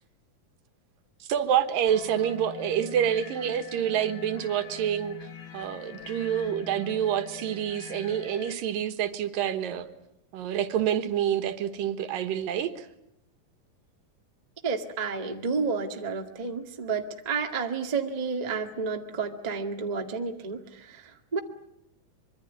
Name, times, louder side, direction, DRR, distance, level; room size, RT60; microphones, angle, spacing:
voice 1, 1.3-5.2 5.5-9.9 10.3-12.9, right 9 dB, 75° right, 9 dB, 3.0 m, -27 dB
sound 1, 1.9-8.5, left 5 dB, 40° left, 2.2 m, -44 dB
voice 2, 14.6-21.4, right 5 dB, 20° right, 4 dB, 1.0 m, -31 dB
25.0 x 23.5 x 9.4 m, 0.81 s
omnidirectional pair, 4.1 m